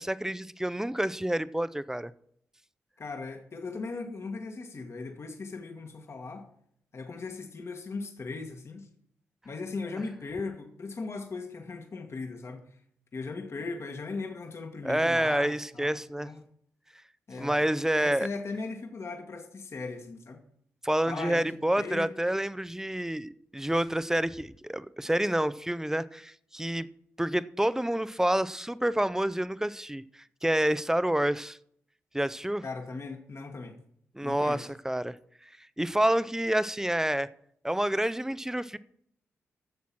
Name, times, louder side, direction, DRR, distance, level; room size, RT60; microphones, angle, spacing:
voice 1, 0.0-2.1 14.8-16.3 17.4-18.3 20.8-26.9 27.2-30.0 30.4-31.6 32.1-32.6 34.2-35.2 35.8-37.3 37.6-38.8, right 1 dB, 10° right, 0.6 m, -28 dB
voice 2, 3.0-6.5 6.9-8.9 9.4-12.8 13.1-16.4 17.3-20.4 21.1-22.2 32.6-33.8 34.2-34.7, left 3 dB, 50° left, 1.5 m, -38 dB
10.5 x 7.0 x 6.0 m
supercardioid pair, 50°, 6 cm